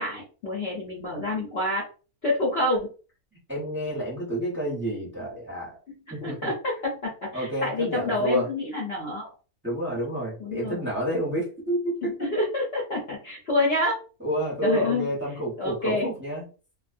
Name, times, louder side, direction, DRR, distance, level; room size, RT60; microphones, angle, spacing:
voice 1, 0.0-1.8 2.2-2.9 6.2-9.3 10.4-10.9 12.0-14.0 14.6-15.1 15.6-16.1, left 2 dB, 55° left, -3 dB, 0.8 m, -27 dB
voice 2, 3.5-5.7 6.2-6.5 7.3-8.5 9.6-11.9 14.2-16.4, equal, 10° right, -5 dB, 0.8 m, -29 dB
2.4 x 2.2 x 2.5 m, 0.36 s
omnidirectional pair, 1.6 m